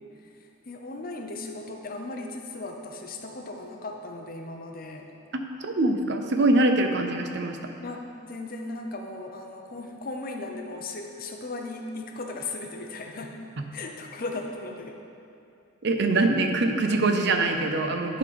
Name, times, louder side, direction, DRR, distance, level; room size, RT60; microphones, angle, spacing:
voice 1, 0.2-5.1 7.8-13.4 13.7-15.0, left 2 dB, 45° left, 3 dB, 0.7 m, -37 dB
voice 2, 5.6-7.7 15.8-18.2, right 2 dB, 55° right, 5 dB, 0.6 m, -23 dB
10.5 x 3.9 x 5.1 m, 2.6 s
head